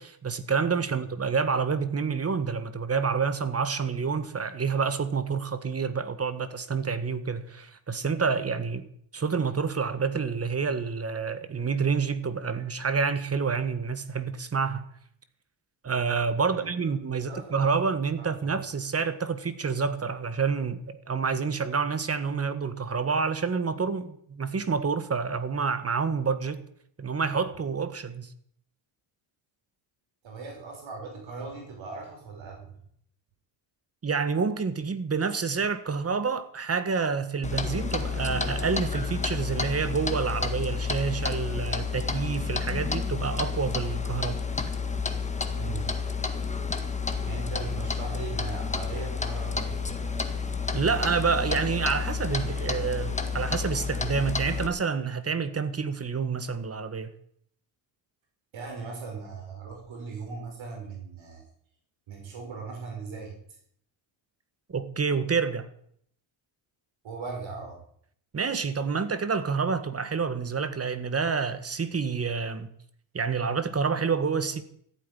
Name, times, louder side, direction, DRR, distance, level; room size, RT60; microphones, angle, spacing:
voice 1, 0.0-8.9 9.1-14.9 15.8-26.6 27.0-28.3 34.0-44.4 50.7-57.1 64.7-65.7 68.3-72.7 73.1-74.6, right 5 dB, 30° right, 1.7 m, -28 dB
voice 2, 16.5-17.6 18.2-18.3 30.2-32.7 45.5-45.9 47.2-49.8 58.5-61.4 62.1-63.4 67.0-67.8, right 4 dB, 65° right, 5.5 m, -39 dB
Clock, 37.4-54.7, left 5 dB, 15° left, 1.7 m, -30 dB
14.5 x 9.2 x 10.0 m
cardioid pair, 110°, 49 cm